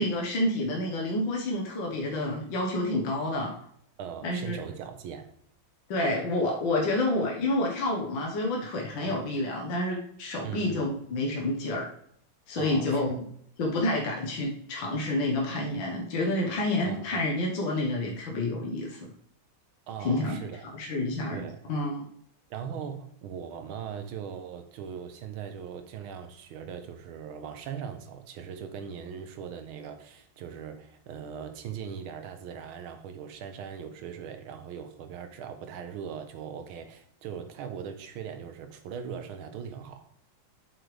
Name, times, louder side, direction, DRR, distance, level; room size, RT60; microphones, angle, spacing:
voice 1, 0.0-3.5 4.2-4.5 5.9-11.9 12.5-13.2 13.6-19.0 20.0-20.3 20.8-22.0, left 1 dB, 65° left, 2.0 m, -29 dB
voice 2, 4.0-5.3 9.1-9.2 10.4-10.9 12.6-13.2 16.9-17.3 19.9-20.7 21.3-21.7 22.5-40.1, right 7 dB, 80° right, 1.8 m, -40 dB
7.7 x 6.6 x 3.4 m
omnidirectional pair, 2.3 m